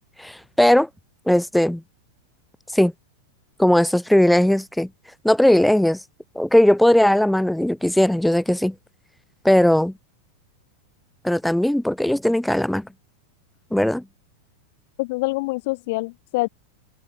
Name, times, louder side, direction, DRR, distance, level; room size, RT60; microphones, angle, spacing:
voice 1, 0.2-0.9 1.3-1.8 2.7-2.9 3.6-4.9 5.2-6.0 6.4-8.7 9.4-9.9 11.2-12.9 13.7-14.0, left 1 dB, ahead, 1.8 m, -18 dB
voice 2, 15.0-16.5, left 23 dB, 50° left, 0.7 m, -25 dB
figure-of-eight pair, 90°, 0 cm